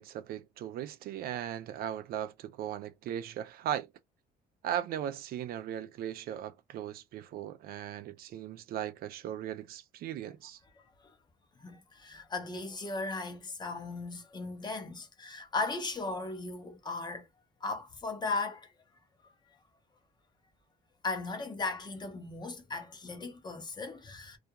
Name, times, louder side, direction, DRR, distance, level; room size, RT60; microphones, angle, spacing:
voice 1, 0.0-3.9 4.6-10.6, right 10 dB, 65° right, 0.4 m, -38 dB
voice 2, 10.8-11.1 11.6-17.3 17.6-18.7 21.0-24.4, left 3 dB, 25° left, 0.7 m, -37 dB
2.4 x 2.2 x 2.8 m
cardioid pair, 110°, 17 cm